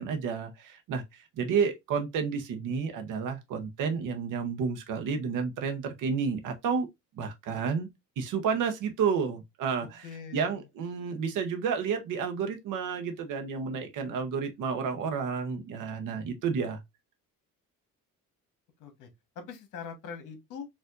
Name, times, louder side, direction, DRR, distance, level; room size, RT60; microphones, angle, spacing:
voice 1, 0.0-6.9 7.2-7.9 8.2-16.8, right 6 dB, 65° right, 0.7 m, -31 dB
voice 2, 10.0-10.6 18.8-19.1 19.3-20.7, left 6 dB, 65° left, 1.1 m, -42 dB
4.4 x 2.5 x 2.4 m
cardioid pair, 175°, 33 cm